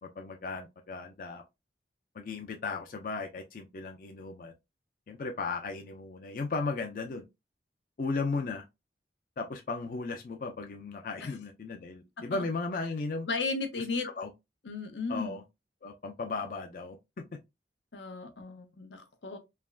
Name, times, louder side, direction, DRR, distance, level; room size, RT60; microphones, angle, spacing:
voice 1, 0.0-1.4 2.1-4.5 5.1-7.2 8.0-8.6 9.4-13.3 13.8-13.9 14.2-14.3 15.1-15.4 15.8-17.0, left 3 dB, 50° left, 0.4 m, -36 dB
voice 2, 13.3-14.1 14.7-15.4 17.9-19.4, left 3 dB, 90° left, 0.7 m, -35 dB
3.3 x 2.1 x 2.3 m
head